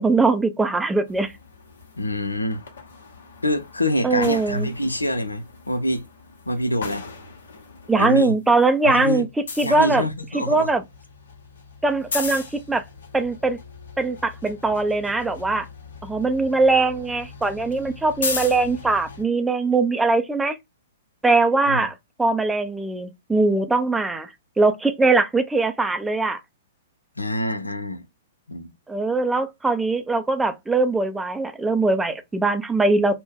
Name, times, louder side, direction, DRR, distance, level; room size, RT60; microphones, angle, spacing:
voice 1, 0.0-1.3 4.0-4.7 7.9-9.3 9.6-10.1 10.3-10.8 11.8-12.8 13.1-13.6 14.0-15.7 16.0-20.6 21.2-24.3 24.6-26.4 28.9-33.2, right 3 dB, 10° right, 0.5 m, -21 dB
sound 1, 1.1-8.1 8.4-19.2, left 4 dB, 65° left, 1.0 m, -38 dB
voice 2, 2.0-2.6 3.4-6.0 6.5-7.0 8.0-8.4 8.8-9.2 9.6-10.7 21.7-21.9 27.2-28.0 28.5-28.7, left 1 dB, 90° left, 0.7 m, -25 dB
2.7 x 2.2 x 3.5 m
figure-of-eight pair, 110°, 0 cm